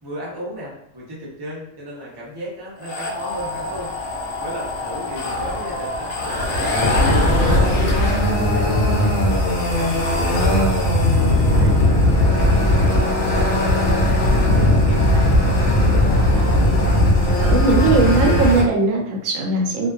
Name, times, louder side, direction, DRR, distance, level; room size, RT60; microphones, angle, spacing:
voice 1, 0.0-3.9 4.4-8.1 8.5-9.3 9.5-10.6 11.0-14.2 14.5-15.7, equal, 25° right, -5 dB, 0.5 m, -35 dB
sound 1, 2.8-18.6, left 1 dB, 65° left, 0.9 m, -18 dB
voice 2, 17.4-19.9, right 3 dB, 80° right, 1 dB, 0.9 m, -19 dB
2.5 x 2.2 x 2.3 m, 0.78 s
omnidirectional pair, 1.3 m